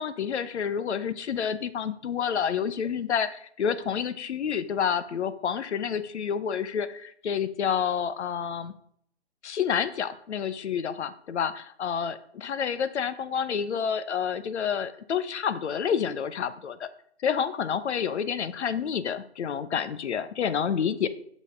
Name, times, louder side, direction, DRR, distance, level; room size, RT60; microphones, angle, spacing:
voice 1, 0.0-8.7 9.4-16.9 17.2-21.1, left 7 dB, 75° left, 13 dB, 0.7 m, -29 dB
6.4 x 5.3 x 5.0 m, 0.65 s
hypercardioid pair, 140°, 34 cm